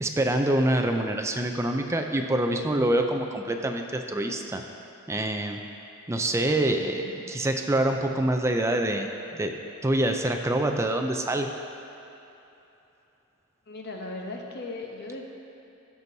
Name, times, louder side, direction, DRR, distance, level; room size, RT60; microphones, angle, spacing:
voice 1, 0.0-4.6 5.1-5.6 6.1-9.6 9.8-11.5, right 1 dB, 15° right, 4 dB, 0.5 m, -26 dB
voice 2, 7.0-7.4 13.7-15.2, left 2 dB, 55° left, 1 dB, 0.9 m, -38 dB
15.0 x 6.1 x 2.7 m, 2.9 s
head